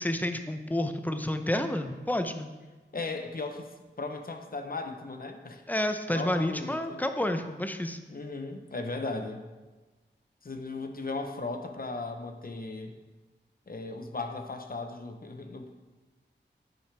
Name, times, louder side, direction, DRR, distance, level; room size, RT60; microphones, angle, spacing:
voice 1, 0.0-2.5 5.7-8.0, left 1 dB, 10° left, 7 dB, 0.7 m, -30 dB
voice 2, 2.9-3.7 4.0-5.6 6.1-7.0 8.1-9.4 10.4-13.0 13.7-15.7, left 3 dB, 50° left, 6 dB, 0.9 m, -37 dB
10.5 x 5.7 x 3.4 m, 1.2 s
wide cardioid pair, 55°, 19 cm